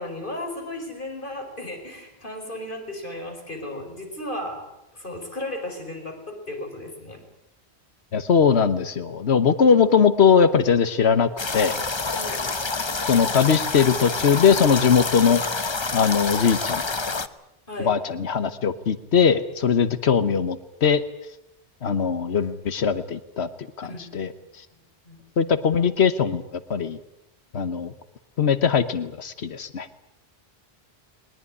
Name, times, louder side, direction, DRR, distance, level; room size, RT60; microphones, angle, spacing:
voice 1, 0.0-4.6 4.9-7.2 12.1-12.4 17.7-17.9 23.8-24.1 25.1-25.6, left 1 dB, 50° left, 4 dB, 5.2 m, -35 dB
voice 2, 8.1-11.8 13.1-15.7 15.9-17.2 17.8-21.0 21.8-23.5 23.8-24.3 25.4-26.4 26.7-27.0 27.5-27.9 28.4-29.9, left 6 dB, 80° left, 13 dB, 1.3 m, -20 dB
sound 1, 11.4-17.3, left 3 dB, 25° left, 0.9 m, -28 dB
21.5 x 20.5 x 9.8 m, 0.86 s
omnidirectional pair, 1.1 m